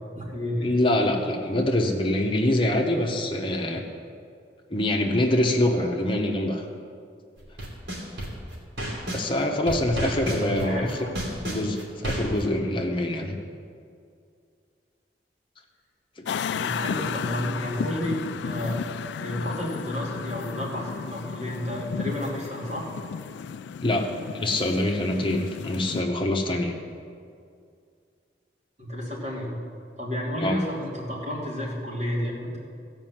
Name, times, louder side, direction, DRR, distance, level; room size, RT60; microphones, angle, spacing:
voice 1, 0.0-0.7 10.4-11.2 16.6-22.9 28.8-29.6 30.0-32.6, equal, 40° right, -5 dB, 2.9 m, -31 dB
voice 2, 0.6-3.8 4.7-6.6 9.1-10.9 11.4-13.4 16.2-16.3 23.8-26.7 30.4-30.6, left 1 dB, 30° left, 2 dB, 1.0 m, -25 dB
sound 1, 7.4-9.3 9.7-12.4, right 1 dB, 80° right, 2.7 m, -31 dB
sound 2, 16.3-26.0, left 6 dB, 80° left, 0.3 m, -34 dB
16.0 x 5.3 x 7.6 m, 2.3 s
head